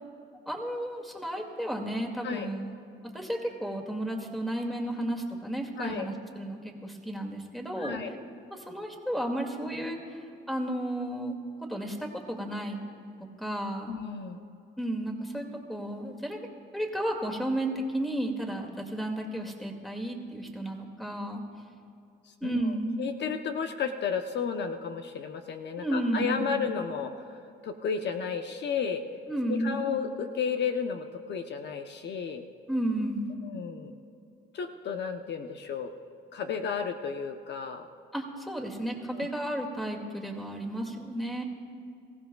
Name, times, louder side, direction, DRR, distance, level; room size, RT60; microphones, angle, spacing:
voice 1, 0.5-2.8 3.1-8.0 8.5-12.8 13.4-13.9 14.8-16.4 16.7-21.4 22.4-23.0 25.8-26.5 29.3-29.8 32.7-33.4 38.1-41.4, right 1 dB, ahead, 1 dB, 2.2 m, -33 dB
voice 2, 5.8-6.1 7.8-8.1 13.9-14.4 22.3-22.6 23.0-27.4 27.6-29.0 29.5-32.5 33.4-33.9 34.5-35.9 36.3-37.9 39.1-39.3, left 6 dB, 60° left, 5 dB, 0.8 m, -33 dB
25.0 x 15.0 x 2.3 m, 2.5 s
cardioid pair, 90°, 20 cm